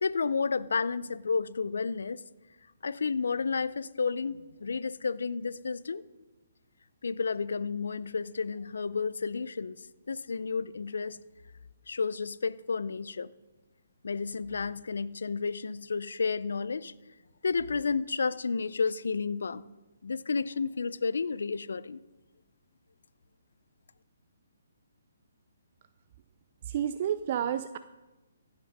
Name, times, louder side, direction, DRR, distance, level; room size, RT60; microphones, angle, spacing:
voice 1, 0.0-2.2 2.8-6.0 7.0-9.8 10.1-11.2 11.9-13.3 14.0-16.9 17.4-19.6 20.0-22.0, left 5 dB, 75° left, 18 dB, 0.5 m, -31 dB
voice 2, 26.6-27.8, right 9 dB, 45° right, 11 dB, 0.4 m, -30 dB
16.0 x 6.0 x 5.4 m, 1.1 s
figure-of-eight pair, 140°, 0 cm